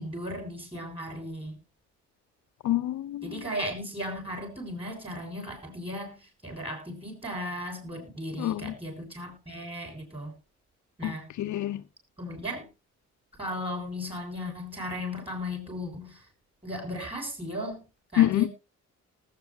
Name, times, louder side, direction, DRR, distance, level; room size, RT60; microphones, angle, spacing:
voice 1, 0.0-1.6 3.2-10.3 11.0-11.3 12.2-12.7 13.4-16.2 16.6-17.8 18.1-18.5, equal, 20° right, 6.8 m, -36 dB
voice 2, 2.6-3.4 8.4-8.7 11.0-11.8 18.2-18.5, left 13 dB, 70° left, 0.8 m, -27 dB
19.0 x 8.6 x 2.8 m
cardioid pair, 90°, 30 cm